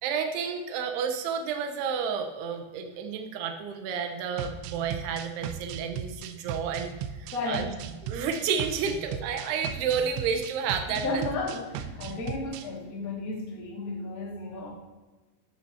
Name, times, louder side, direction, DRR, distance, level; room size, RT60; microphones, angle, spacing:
voice 1, 0.0-6.9 7.2-7.7 8.0-11.2, right 6 dB, 75° right, 6 dB, 2.8 m, -31 dB
sound 1, 4.4-12.7, right 8 dB, 90° right, 3.1 m, -37 dB
voice 2, 7.3-7.7 10.9-14.7, left 3 dB, 35° left, -3 dB, 1.4 m, -33 dB
13.0 x 12.5 x 2.9 m, 1.2 s
omnidirectional pair, 5.2 m